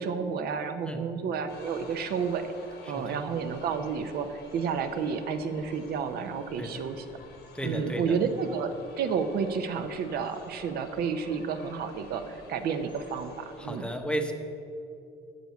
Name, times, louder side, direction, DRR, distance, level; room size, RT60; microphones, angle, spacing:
voice 1, 0.0-7.0 7.6-13.9, right 6 dB, 65° right, 8 dB, 0.8 m, -31 dB
sound 1, 1.5-13.8, left 2 dB, 85° left, 1.9 m, -49 dB
voice 2, 6.6-6.9 7.5-8.2 13.6-14.3, right 1 dB, 5° left, 5 dB, 0.8 m, -33 dB
7.7 x 6.5 x 8.0 m, 2.6 s
cardioid pair, 110°, 17 cm